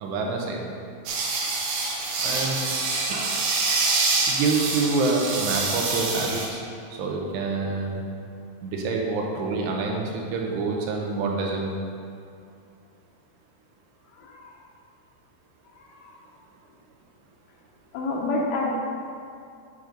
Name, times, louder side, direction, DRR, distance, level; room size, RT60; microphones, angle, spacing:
voice 1, 0.0-0.8 2.2-2.6 3.1-3.3 4.3-6.6 7.0-8.0 8.6-11.7, right 3 dB, 85° right, 0 dB, 3.0 m, -27 dB
sound 1, 1.1-6.5, right 3 dB, 65° right, 2.4 m, -26 dB
voice 2, 14.1-14.5 15.8-16.1 17.9-18.7, left 2 dB, 75° left, -2 dB, 2.6 m, -29 dB
10.5 x 5.1 x 3.9 m, 2.5 s
omnidirectional pair, 4.9 m